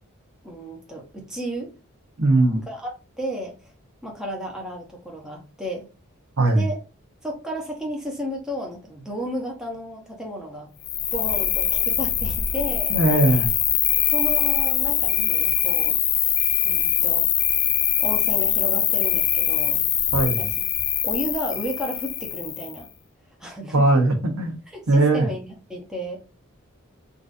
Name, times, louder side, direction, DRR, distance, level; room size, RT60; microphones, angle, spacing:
voice 1, 0.4-1.7 2.5-2.9 3.2-3.5 4.0-5.9 6.5-6.8 7.2-10.7 11.1-13.0 14.1-16.0 16.6-17.3 17.5-17.7 18.0-19.8 20.4-20.5 21.0-22.9 23.4-23.9 24.7-26.2, equal, 5° right, 0.7 m, -33 dB
voice 2, 2.2-2.6 6.4-6.7 12.9-13.5 20.1-20.4 23.7-24.5 24.9-25.3, right 2 dB, 75° right, 0.8 m, -19 dB
Cricket, 10.8-22.8, left 10 dB, 50° left, 0.4 m, -23 dB
3.8 x 2.5 x 2.5 m
head